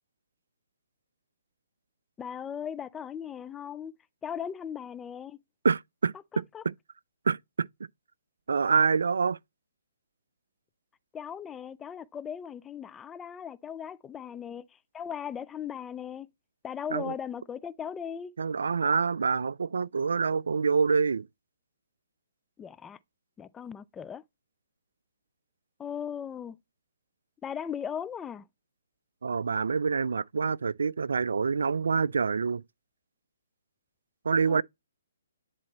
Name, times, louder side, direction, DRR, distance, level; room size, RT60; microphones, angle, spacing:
voice 1, 2.2-3.9 4.2-5.4 6.5-6.6 11.1-16.3 16.6-18.3 22.6-23.0 23.4-24.2 25.8-26.6 27.4-28.5 34.5-34.6, left 8 dB, 15° left, 0.4 m, -38 dB
voice 2, 5.6-6.7 7.3-7.7 8.5-9.4 16.9-17.1 18.4-21.3 29.2-32.6 34.2-34.6, right 5 dB, 75° right, 0.3 m, -26 dB
10.5 x 4.1 x 2.9 m
hypercardioid pair, 140°, 0 cm